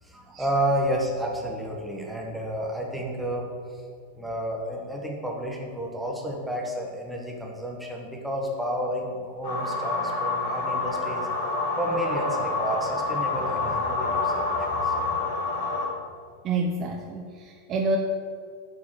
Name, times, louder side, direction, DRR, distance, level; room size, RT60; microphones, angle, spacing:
voice 1, 0.0-3.8 4.2-11.3 11.8-15.0, right 1 dB, ahead, -2 dB, 1.8 m, -31 dB
sound 1, 9.4-15.9, left 3 dB, 60° left, 1.8 m, -27 dB
voice 2, 16.4-18.0, right 3 dB, 30° right, 2 dB, 0.7 m, -28 dB
8.6 x 4.8 x 7.5 m, 2.1 s
figure-of-eight pair, 90°, 0 cm